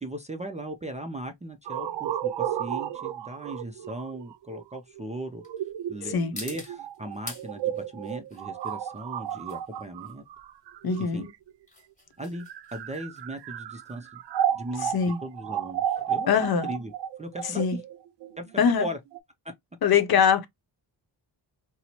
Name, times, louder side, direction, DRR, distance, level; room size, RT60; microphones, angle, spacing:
voice 1, 0.0-5.4 5.9-10.2 11.0-11.3 12.2-14.2 14.5-16.9 17.2-17.6 18.4-19.0, right 1 dB, 20° right, 0.3 m, -38 dB
sound 1, 0.7-17.4, left 2 dB, 15° left, 1.4 m, -49 dB
sound 2, 1.7-11.5 12.2-19.2, right 10 dB, 75° right, 0.5 m, -33 dB
voice 2, 10.8-11.3 14.8-15.2 16.3-16.7 17.6-17.8 18.6-18.9 19.8-20.5, left 7 dB, 60° left, 0.7 m, -22 dB
4.3 x 2.0 x 2.7 m
wide cardioid pair, 155°, 42 cm